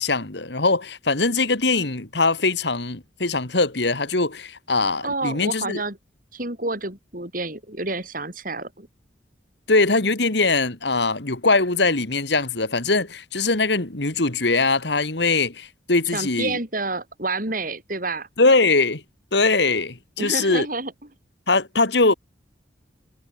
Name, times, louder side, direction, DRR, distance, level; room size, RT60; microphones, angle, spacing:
voice 1, 0.0-5.8 9.7-16.6 18.4-19.0 19.3-20.7 21.5-22.1, left 3 dB, 65° left, 2.2 m, -21 dB
voice 2, 5.0-6.0 6.3-8.9 16.1-18.3 20.2-20.9, right 2 dB, 45° right, 7.0 m, -29 dB
head